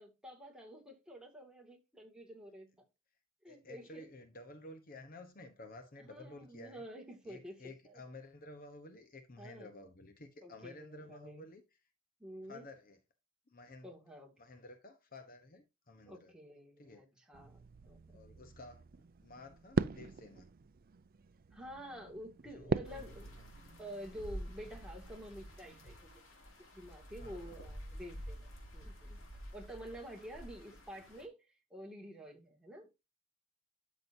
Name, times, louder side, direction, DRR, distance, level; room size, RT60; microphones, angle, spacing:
voice 1, 0.0-2.7 3.4-4.1 6.0-8.0 9.4-9.7 10.4-11.5 12.2-12.7 13.8-14.3 16.1-18.2 21.5-23.3 23.8-26.1 26.8-29.2 29.5-32.9, equal, 5° right, 2.4 m, -50 dB
voice 2, 3.5-6.8 7.3-11.6 12.5-13.0 13.5-13.9 14.4-16.3 16.8-17.0 18.1-18.9 19.2-20.5 22.5-23.0 23.4-23.5 27.2-27.6, left 2 dB, 45° left, 1.1 m, -52 dB
sound 1, 17.3-26.0, right 4 dB, 45° right, 0.4 m, -42 dB
sound 2, 22.8-31.3, equal, 70° left, 2.9 m, -49 dB
12.5 x 6.4 x 2.8 m
head